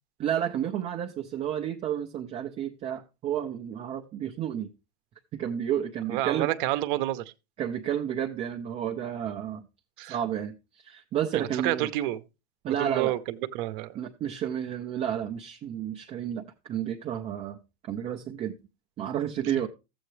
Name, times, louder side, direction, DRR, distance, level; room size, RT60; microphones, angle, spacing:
voice 1, 0.2-4.7 5.3-6.5 7.6-9.7 10.1-11.9 12.6-13.1 13.9-17.6 17.9-18.5 19.0-19.7, right 10 dB, 20° right, 0.5 m, -31 dB
voice 2, 6.1-7.2 10.0-10.2 11.3-12.2 12.7-13.2 13.5-14.0, right 15 dB, 55° right, 0.8 m, -29 dB
13.0 x 7.8 x 3.2 m
supercardioid pair, 155°, 31 cm